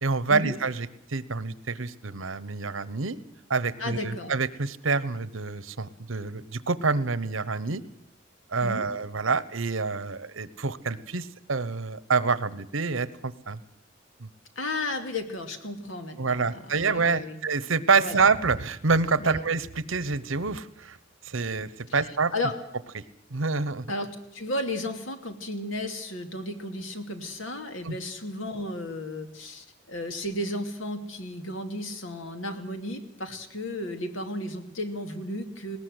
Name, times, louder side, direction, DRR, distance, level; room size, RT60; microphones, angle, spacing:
voice 1, 0.0-3.2 3.5-7.8 8.5-13.6 14.2-14.3 16.2-21.0 21.2-22.3 23.3-23.9 27.8-28.0, right 4 dB, 80° right, 16 dB, 1.1 m, -27 dB
voice 2, 3.8-4.3 8.6-8.9 14.6-17.4 18.0-18.2 19.2-19.4 21.9-22.5 23.9-35.8, left 1 dB, 75° left, 6 dB, 2.7 m, -34 dB
20.5 x 18.5 x 8.0 m, 0.74 s
head